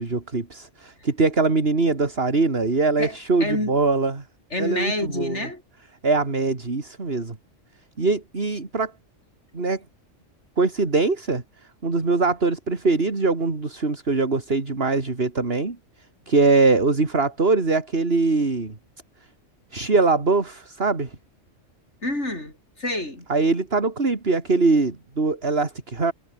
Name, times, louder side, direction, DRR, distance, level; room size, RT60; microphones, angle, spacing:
voice 1, 0.0-4.2 4.6-5.4 6.0-7.4 8.0-8.9 9.5-9.8 10.6-11.4 11.8-15.8 16.3-18.7 19.7-21.1 23.3-26.1, right 3 dB, 50° right, 3.0 m, -22 dB
voice 2, 3.0-3.8 4.5-5.6 22.0-23.2, left 1 dB, 65° left, 8.1 m, -28 dB
omnidirectional pair, 1.3 m